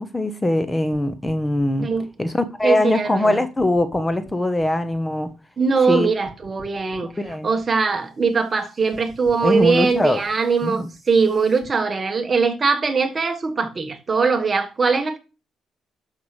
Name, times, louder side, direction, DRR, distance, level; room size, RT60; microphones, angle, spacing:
voice 1, 0.0-1.9 2.2-5.3 5.9-6.1 7.0-7.5 9.4-10.2 10.6-10.9, left 1 dB, 15° left, 1.0 m, -22 dB
sound 1, 0.9-3.3 3.6-6.0 6.2-11.7, equal, 35° left, 3.7 m, -49 dB
voice 2, 2.6-3.4 5.6-7.1 7.4-15.2, right 4 dB, 35° right, 1.4 m, -21 dB
12.0 x 5.7 x 3.2 m
cardioid pair, 90°, 0 cm